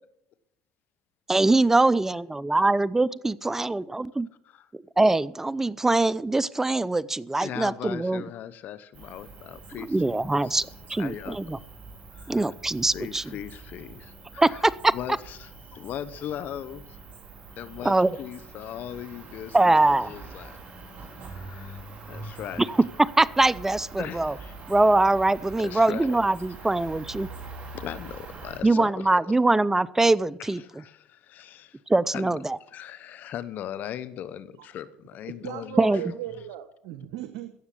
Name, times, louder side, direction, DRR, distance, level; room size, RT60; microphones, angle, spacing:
voice 1, 1.3-4.3 5.0-8.2 9.8-11.6 12.3-13.3 14.4-14.9 17.8-18.1 19.5-20.1 22.7-24.3 24.7-27.3 28.6-30.6 31.9-32.6 35.8-36.0, right 2 dB, 10° right, 0.6 m, -23 dB
voice 2, 7.4-10.6 11.0-11.6 12.1-12.5 12.9-14.6 14.9-17.0 17.6-20.6 21.2-21.8 22.1-22.6 24.0-24.5 25.6-26.2 27.7-29.2 30.4-31.8 32.1-32.3 32.7-36.1, left 10 dB, 55° left, 1.0 m, -39 dB
Cricket, 8.9-28.6, right 3 dB, 45° right, 4.5 m, -44 dB
voice 3, 35.4-37.5, right 13 dB, 80° right, 1.0 m, -37 dB
16.0 x 7.2 x 8.4 m
supercardioid pair, 85°, 4 cm